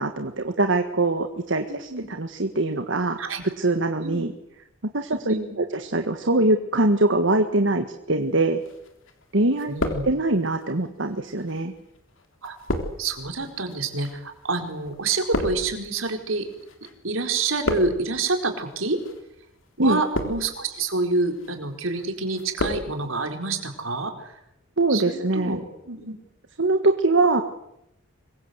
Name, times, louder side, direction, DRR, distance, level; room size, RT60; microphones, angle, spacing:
voice 1, 0.0-3.2 3.6-4.3 4.9-8.6 9.3-9.7 10.0-11.7 19.8-20.0 24.8-25.6 26.6-27.4, right 2 dB, 65° right, 6 dB, 1.7 m, -23 dB
voice 2, 1.7-2.1 3.2-3.4 4.0-4.3 5.2-5.5 9.7-10.0 12.4-12.6 13.0-16.5 17.0-19.0 19.8-24.4 24.9-26.1, right 3 dB, 80° right, 5 dB, 4.4 m, -27 dB
sound 1, 8.6-9.2 9.5-10.6 11.3-16.9 17.2-18.2 18.9-19.2 19.8-20.7 21.1-21.5 21.9-22.9 23.1-23.2, left 1 dB, 70° left, 3.8 m, -31 dB
26.0 x 22.5 x 8.1 m, 0.81 s
head